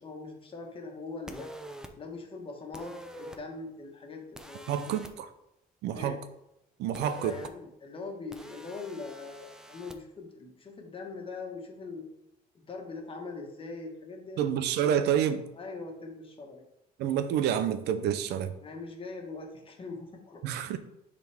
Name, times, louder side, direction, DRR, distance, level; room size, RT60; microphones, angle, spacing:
voice 1, 0.0-1.5 2.0-5.0 5.9-6.2 7.0-12.1 12.5-14.4 15.5-16.6 18.6-20.4, left 3 dB, 30° left, 1.5 m, -42 dB
sound 1, 1.3-1.9 2.7-3.4 4.4-5.1 6.9-7.5 8.3-10.0, equal, 5° right, 0.6 m, -45 dB
voice 2, 4.7-5.3 5.8-6.2 6.8-7.4 14.4-15.4 17.0-18.5 20.4-20.8, right 9 dB, 80° right, 0.6 m, -28 dB
9.8 x 4.1 x 3.5 m
cardioid pair, 110°, 17 cm